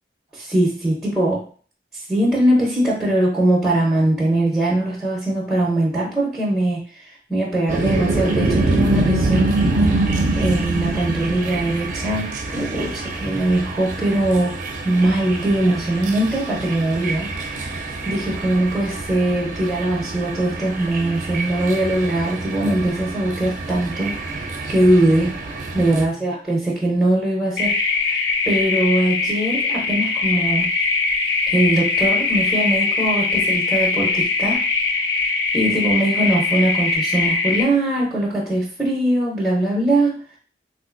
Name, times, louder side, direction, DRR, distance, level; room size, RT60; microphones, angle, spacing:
voice 1, 0.3-1.5 2.1-14.6 14.8-17.6 18.0-24.4 24.7-25.3 25.7-28.1 28.5-30.7 31.5-34.6 35.5-40.4, right 1 dB, 5° right, -4 dB, 0.6 m, -21 dB
sound 1, 7.7-26.1, right 2 dB, 45° right, 0.5 m, -25 dB
sound 2, 27.6-37.6, left 4 dB, 75° left, 0.5 m, -21 dB
3.6 x 2.5 x 2.4 m, 0.42 s
head